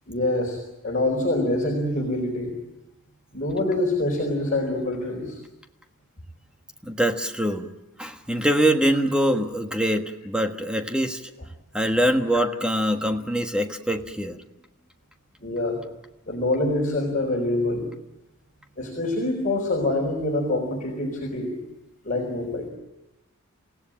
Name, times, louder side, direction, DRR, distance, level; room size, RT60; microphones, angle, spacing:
voice 1, 0.1-0.6 0.8-2.5 3.3-5.4 12.3-12.4 15.4-15.8 16.3-17.9 18.8-21.6 22.0-22.7, left 2 dB, 40° left, -1 dB, 4.5 m, -25 dB
voice 2, 6.8-7.7 8.0-11.2 11.7-14.4, right 1 dB, 5° right, 5 dB, 1.4 m, -23 dB
28.5 x 17.0 x 8.8 m, 0.98 s
head